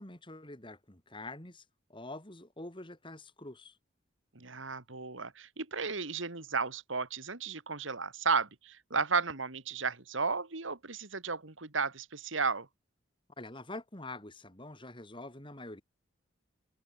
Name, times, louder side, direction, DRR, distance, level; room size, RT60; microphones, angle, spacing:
voice 1, 0.0-1.6 1.9-3.8 13.4-15.8, left 2 dB, 25° left, 3.0 m, -45 dB
voice 2, 4.3-12.7, right 4 dB, 75° right, 2.4 m, -34 dB
open air
head